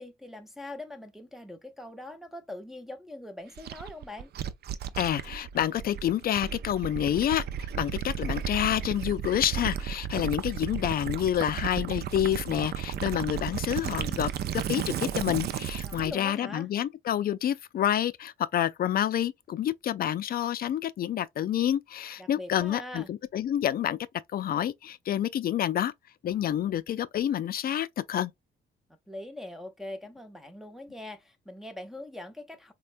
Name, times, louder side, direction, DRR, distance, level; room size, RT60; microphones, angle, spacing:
voice 1, 0.0-4.3 15.8-16.7 22.2-23.1 29.1-32.7, left 1 dB, ahead, 0.6 m, -42 dB
Gurgling / Liquid, 3.6-16.1, right 9 dB, 55° right, 0.4 m, -34 dB
voice 2, 4.9-24.0 24.3-25.9 26.2-28.3, left 11 dB, 50° left, 0.4 m, -28 dB
4.2 x 2.2 x 2.5 m
cardioid pair, 90°, 20 cm